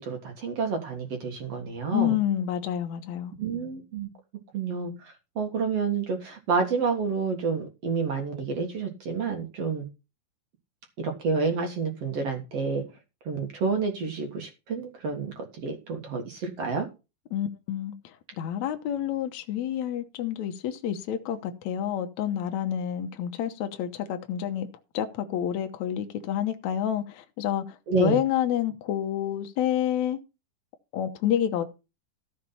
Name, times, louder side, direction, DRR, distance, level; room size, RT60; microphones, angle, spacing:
voice 1, 0.0-2.2 3.4-4.1 4.5-9.9 11.0-12.8 13.3-16.9 27.9-28.2, right 5 dB, 50° right, 2.1 m, -29 dB
voice 2, 1.9-3.3 17.3-17.9 18.4-24.7 24.9-30.2 30.9-31.6, left 10 dB, 75° left, 1.7 m, -28 dB
14.0 x 5.7 x 5.7 m
omnidirectional pair, 4.6 m